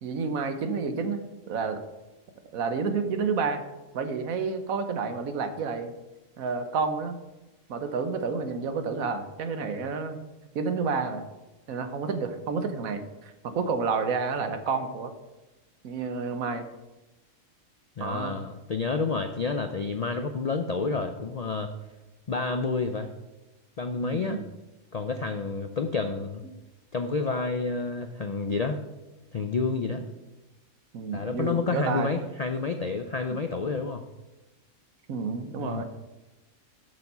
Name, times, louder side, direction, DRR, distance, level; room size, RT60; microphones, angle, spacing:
voice 1, 0.0-1.8 2.5-3.6 3.9-5.9 6.4-7.2 7.7-10.2 10.5-11.2 11.7-15.1 15.8-16.7 18.0-18.4 24.0-24.5 29.9-30.0 30.9-32.1 33.3-33.4 35.1-35.8, right 5 dB, 90° right, 8 dB, 1.3 m, -30 dB
voice 2, 18.0-21.7 22.3-23.1 23.8-24.4 24.9-26.4 26.9-28.8 29.3-30.0 31.1-34.0 35.6-35.8, left 4 dB, 65° left, 6 dB, 0.4 m, -29 dB
7.7 x 7.1 x 5.5 m, 1.1 s
omnidirectional pair, 1.4 m